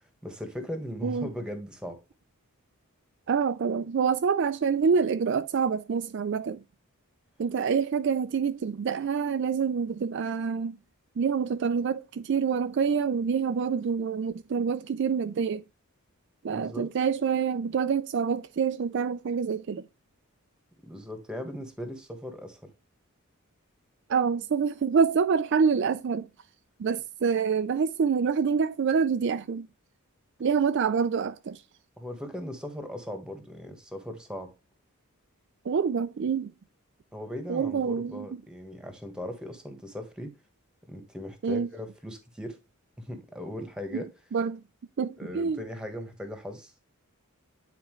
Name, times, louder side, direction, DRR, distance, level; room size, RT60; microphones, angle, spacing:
voice 1, 0.2-2.0 16.5-16.9 20.8-22.7 32.0-34.5 37.1-40.3 40.9-42.6 43.0-44.1 45.2-46.7, left 1 dB, 5° right, 1.3 m, -38 dB
voice 2, 3.3-6.6 7.4-10.8 11.2-15.6 16.4-19.8 24.1-26.3 26.8-29.7 30.4-31.6 35.7-36.5 37.5-38.3 41.4-41.7 43.9-44.0 44.3-44.6 45.0-45.6, right 6 dB, 55° right, 0.4 m, -26 dB
9.5 x 4.3 x 3.1 m
head